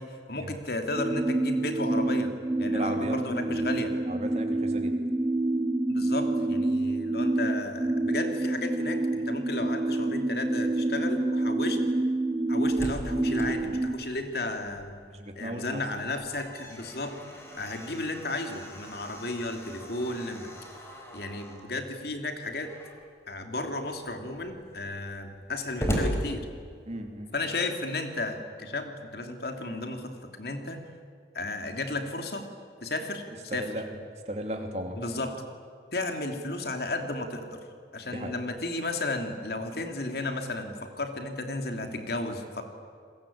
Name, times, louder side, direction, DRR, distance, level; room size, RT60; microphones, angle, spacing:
voice 1, 0.0-2.3 2.6-3.9 5.9-11.8 12.5-15.0 15.4-17.1 17.6-20.5 21.1-22.7 23.3-26.5 27.3-30.1 30.4-30.8 31.3-32.4 32.8-33.2 33.5-33.7 35.0-35.3 35.9-37.6 37.9-42.6, left 2 dB, 60° left, 5 dB, 3.0 m, -33 dB
sound 1, 1.0-14.0, right 2 dB, 20° right, 2.0 m, -28 dB
voice 2, 2.7-3.2 3.5-3.6 4.1-4.9 15.1-15.8 26.9-27.3 33.5-33.9 34.3-35.0 38.1-38.4, right 1 dB, 35° right, 4 dB, 3.1 m, -36 dB
Slam, 12.4-15.2 15.5-15.6 16.0-21.7 22.6-23.1 23.7-23.8 24.0-27.1, equal, 15° left, 4.5 m, -38 dB
30.0 x 21.5 x 8.8 m, 2.3 s
head